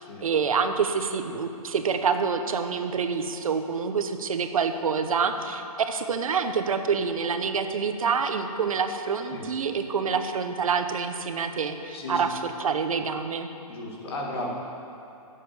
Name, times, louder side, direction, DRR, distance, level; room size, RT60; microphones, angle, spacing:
voice 1, 0.0-13.5, right 5 dB, 65° right, 8 dB, 0.9 m, -27 dB
voice 2, 11.9-12.2 13.7-14.5, left 2 dB, 45° left, -2 dB, 2.0 m, -34 dB
8.3 x 7.6 x 8.4 m, 2.6 s
hypercardioid pair, 180°, 19 cm